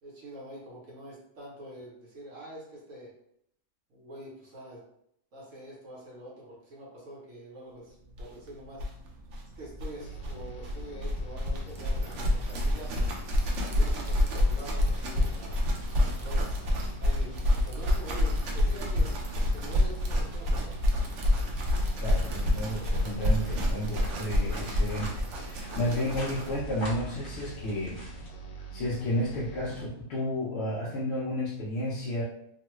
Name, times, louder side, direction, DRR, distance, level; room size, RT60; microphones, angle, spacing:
voice 1, 0.0-3.1 3.9-4.8 5.3-8.9 9.5-13.1 13.7-15.6 16.1-16.6 17.0-17.4 17.6-20.8, right 1 dB, 55° right, -4 dB, 1.1 m, -45 dB
sound 1, 8.2-8.3 8.5-8.6 8.7-26.6, left 1 dB, 70° right, 0.7 m, -28 dB
sound 2, 10.0-29.8, right 2 dB, 85° left, 1.2 m, -45 dB
sound 3, 21.7-28.3, left 1 dB, 20° left, 0.9 m, -45 dB
voice 2, 22.0-28.0 28.7-32.2, left 1 dB, 60° left, -7 dB, 0.7 m, -32 dB
2.9 x 2.2 x 3.0 m, 0.73 s
omnidirectional pair, 1.8 m